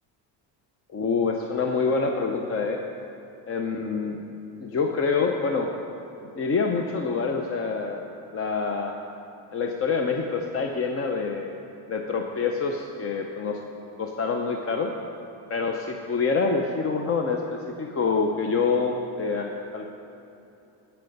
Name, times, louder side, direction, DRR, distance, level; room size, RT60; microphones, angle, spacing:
voice 1, 0.9-2.8 3.5-4.2 4.6-5.7 6.4-8.0 8.3-9.0 9.5-11.5 11.9-13.6 14.0-14.9 15.5-19.9, left 4 dB, 30° left, 3 dB, 0.5 m, -26 dB
16.0 x 5.8 x 5.3 m, 2.8 s
cardioid pair, 150°, 45 cm